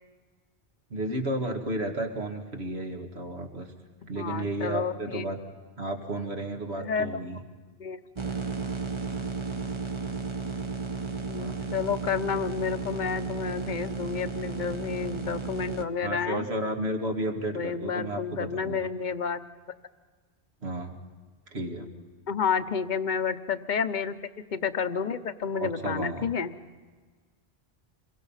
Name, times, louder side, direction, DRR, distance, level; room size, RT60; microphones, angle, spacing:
voice 1, 0.9-3.7 4.1-5.4 5.8-7.4 11.4-11.7 16.0-18.9 20.6-20.9 21.5-21.9 25.5-26.3, right 1 dB, 80° right, 2 dB, 2.4 m, -32 dB
voice 2, 4.1-5.2 6.8-7.1 7.8-8.0 11.3-16.5 17.5-19.4 22.3-24.1 24.5-26.5, left 6 dB, 50° left, 11 dB, 0.9 m, -30 dB
sound 1, 8.2-15.8, right 4 dB, 30° right, 1.0 m, -33 dB
27.0 x 22.5 x 5.7 m, 1.5 s
omnidirectional pair, 1.1 m